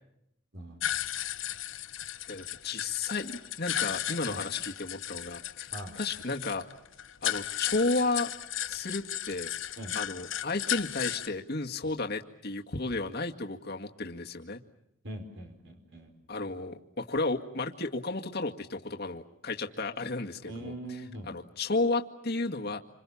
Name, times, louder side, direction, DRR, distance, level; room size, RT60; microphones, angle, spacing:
voice 1, 0.5-0.8 4.3-4.4 5.7-6.0 9.8-10.0 15.0-16.1 20.4-21.3, right 1 dB, 65° right, 5 dB, 4.6 m, -41 dB
sound 1, 0.8-11.3, left 11 dB, 80° left, 1.2 m, -35 dB
voice 2, 2.3-5.7 6.0-6.6 7.2-8.3 8.7-9.5 10.0-14.6 16.3-20.7 21.3-22.8, left 3 dB, 55° left, 3 dB, 2.0 m, -33 dB
27.5 x 26.5 x 7.2 m, 0.79 s
head